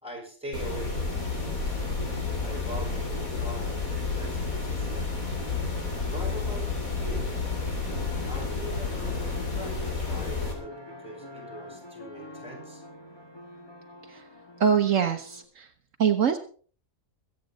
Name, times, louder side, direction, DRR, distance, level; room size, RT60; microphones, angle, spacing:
voice 1, 0.0-1.8 2.4-5.2 6.1-7.3 8.2-12.8, right 1 dB, 5° right, 1 dB, 4.9 m, -42 dB
sound 1, 0.5-10.5, left 4 dB, 90° left, 3.6 m, -30 dB
sound 2, 7.9-15.4, left 1 dB, 20° left, 2.0 m, -46 dB
voice 2, 14.6-15.7 16.0-16.4, right 7 dB, 70° right, 7 dB, 1.3 m, -23 dB
22.5 x 8.4 x 4.1 m, 0.42 s
omnidirectional pair, 1.4 m